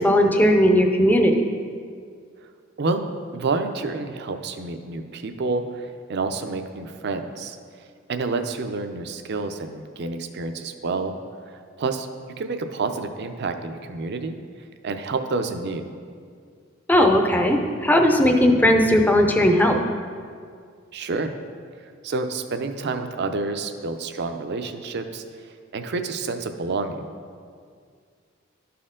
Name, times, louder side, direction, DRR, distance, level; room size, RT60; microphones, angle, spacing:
voice 1, 0.0-1.5 16.9-19.8, equal, 10° left, 4 dB, 0.5 m, -17 dB
voice 2, 3.3-7.6 8.1-11.2 11.5-12.1 12.4-14.4 14.8-15.9 20.9-21.3 22.0-25.2 25.7-27.1, right 3 dB, 55° right, 7 dB, 0.5 m, -28 dB
12.0 x 4.3 x 3.7 m, 2.1 s
head